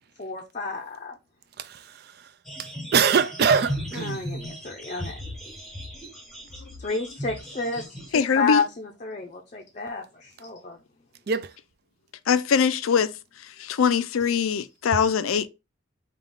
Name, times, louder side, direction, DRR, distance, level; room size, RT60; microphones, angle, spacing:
voice 1, 0.2-1.1 4.0-5.2 6.8-10.8, left 4 dB, 35° left, 0.5 m, -30 dB
voice 2, 1.6-2.3 2.6-4.3 11.3-11.5, right 6 dB, 50° right, 0.4 m, -24 dB
sound 1, 2.4-8.1, equal, ahead, 0.8 m, -36 dB
voice 3, 8.1-8.6 12.3-13.1 13.6-15.5, left 6 dB, 90° left, 0.4 m, -22 dB
5.2 x 2.3 x 3.6 m
head